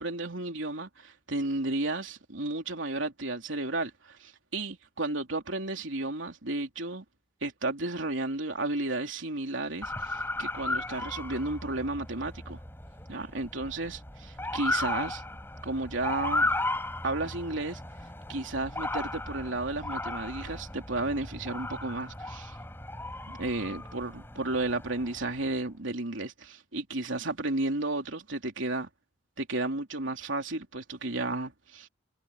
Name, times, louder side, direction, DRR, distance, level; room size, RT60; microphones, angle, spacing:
voice 1, 0.0-7.0 7.4-12.6 13.1-15.2 15.6-16.5 17.0-17.8 18.3-22.6 23.3-28.9 29.4-31.9, right 2 dB, 75° right, 3.2 m, -33 dB
Motor vehicle (road) / Siren, 9.8-25.4, left 2 dB, 10° left, 6.7 m, -35 dB
head